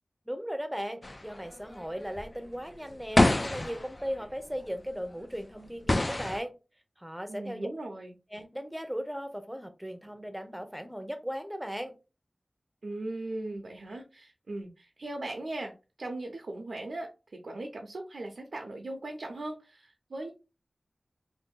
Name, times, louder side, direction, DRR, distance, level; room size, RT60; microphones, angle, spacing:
voice 1, 0.3-6.5 7.0-7.7 8.3-11.9, equal, 5° right, 0.6 m, -37 dB
sound 1, 1.0-4.5 5.3-5.4 5.9-6.4, left 2 dB, 40° left, 0.3 m, -27 dB
voice 2, 7.3-8.1 12.8-15.7 16.0-17.1 17.4-20.3, right 2 dB, 90° right, 0.5 m, -38 dB
2.6 x 2.5 x 3.6 m
wide cardioid pair, 60°, 0 cm